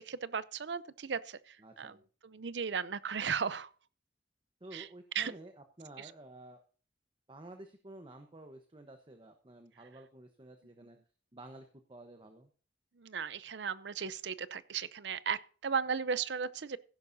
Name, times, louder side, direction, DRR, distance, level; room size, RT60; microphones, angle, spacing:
voice 1, 0.0-2.0 2.2-3.7 4.7-4.9 5.1-5.3 6.0-6.1 13.0-16.8, right 6 dB, 85° right, 0.6 m, -36 dB
voice 2, 1.6-2.0 4.6-5.5 5.8-6.6 7.3-11.0 11.3-12.5, right 1 dB, 30° right, 1.1 m, -51 dB
15.5 x 11.0 x 2.7 m
head